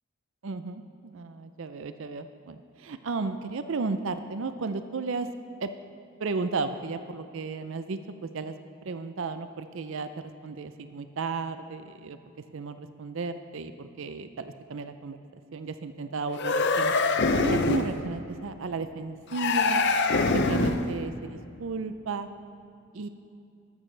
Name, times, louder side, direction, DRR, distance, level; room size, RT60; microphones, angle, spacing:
voice 1, 0.4-0.8 1.1-5.3 5.6-5.7 6.2-8.5 8.8-10.1 10.4-12.2 12.5-15.2 15.5-16.9 17.4-19.9 20.3-22.3 22.9-23.1, right 4 dB, 60° right, 10 dB, 0.5 m, -34 dB
sound 1, 16.3-18.0 19.3-20.9, left 3 dB, 50° left, 0.6 m, -24 dB
14.0 x 12.5 x 3.3 m, 2.5 s
head